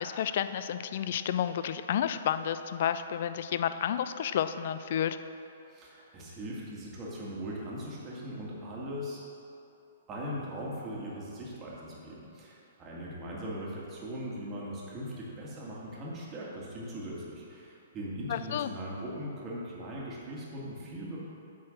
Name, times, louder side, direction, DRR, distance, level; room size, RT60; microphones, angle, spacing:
voice 1, 0.0-5.2 13.2-13.3 18.3-18.7, left 9 dB, 55° left, 11 dB, 0.3 m, -31 dB
voice 2, 5.7-9.2 10.1-21.2, equal, 25° right, -5 dB, 2.0 m, -40 dB
8.4 x 4.4 x 6.4 m, 2.8 s
hypercardioid pair, 125°, 0 cm